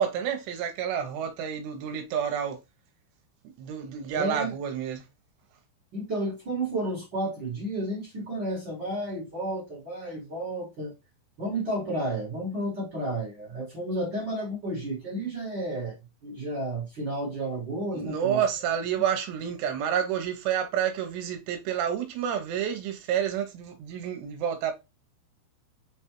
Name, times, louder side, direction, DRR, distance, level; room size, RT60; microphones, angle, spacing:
voice 1, 0.0-2.6 3.6-5.0 17.9-24.7, right 8 dB, 80° right, 2.9 m, -29 dB
voice 2, 4.1-4.5 5.9-10.9 11.4-18.4, right 1 dB, 50° right, 1.3 m, -32 dB
6.5 x 2.3 x 2.9 m
omnidirectional pair, 5.0 m